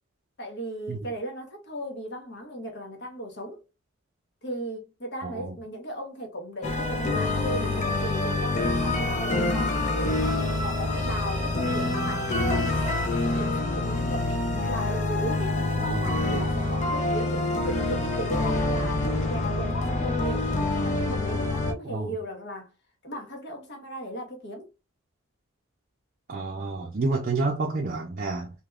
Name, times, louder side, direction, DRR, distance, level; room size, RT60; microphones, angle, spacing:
voice 1, 0.4-3.6 4.4-14.4 14.7-22.7 23.0-24.7, right 1 dB, 55° left, 1.1 m, -36 dB
voice 2, 5.2-5.5 15.8-16.1 21.8-22.1 26.3-28.5, right 3 dB, 40° right, 0.5 m, -29 dB
sound 1, 6.6-21.7, left 2 dB, 35° left, 0.6 m, -26 dB
3.4 x 2.9 x 2.3 m
head